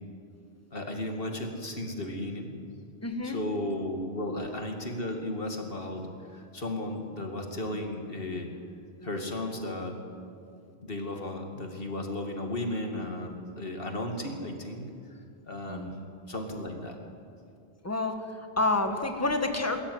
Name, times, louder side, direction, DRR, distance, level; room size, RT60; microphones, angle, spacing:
voice 1, 0.7-2.6 3.2-8.5 9.0-10.0 10.8-14.9 15.5-17.0, left 1 dB, 55° left, 3 dB, 2.5 m, -35 dB
voice 2, 3.0-3.4 15.7-16.0 17.8-19.8, left 2 dB, 15° left, 5 dB, 1.5 m, -29 dB
22.5 x 13.5 x 9.6 m, 2.5 s
omnidirectional pair, 1.1 m